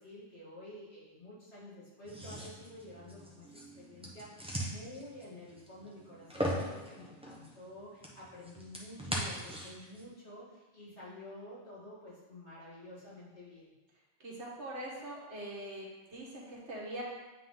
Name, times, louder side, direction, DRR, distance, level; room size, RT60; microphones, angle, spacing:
voice 1, 0.0-3.5 3.8-13.7, left 1 dB, 65° left, -10 dB, 2.9 m, -50 dB
sound 1, 2.0-10.0, equal, 5° right, 0.9 m, -40 dB
voice 2, 14.2-15.9 16.1-17.0, right 1 dB, 70° right, -4 dB, 1.7 m, -42 dB
9.0 x 3.8 x 3.9 m, 1.1 s
omnidirectional pair, 1.2 m